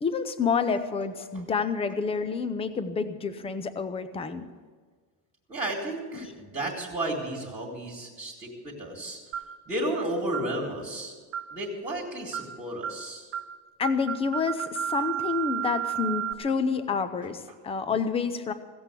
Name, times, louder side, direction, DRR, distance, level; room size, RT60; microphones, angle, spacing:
voice 1, 0.0-4.4 13.8-18.5, left 5 dB, 15° left, 11 dB, 0.5 m, -28 dB
voice 2, 5.5-9.2 9.7-11.1 11.5-13.3, right 1 dB, 15° right, -4 dB, 1.9 m, -33 dB
sound 1, 9.3-9.6 10.3-10.5 11.3-11.6 12.3-12.5 12.8-13.0 13.3-13.5 13.8-16.3, right 10 dB, 35° right, 0.6 m, -32 dB
16.0 x 7.8 x 8.2 m, 1.5 s
cardioid pair, 170°, 43 cm